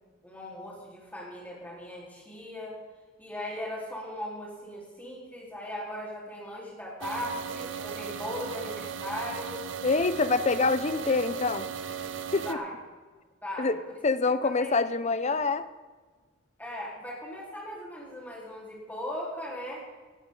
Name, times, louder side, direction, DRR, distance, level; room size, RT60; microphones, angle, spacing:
voice 1, 0.2-2.8 3.2-9.6 12.3-12.7 13.4-13.9 14.4-14.7 16.6-19.8, left 1 dB, 10° left, -5 dB, 4.0 m, -38 dB
sound 1, 7.0-12.5, right 6 dB, 65° right, 0.7 m, -37 dB
voice 2, 9.8-11.7 12.3-12.6 13.6-13.8 14.0-15.7, left 3 dB, 35° left, 12 dB, 0.7 m, -26 dB
18.0 x 12.5 x 3.9 m, 1.4 s
head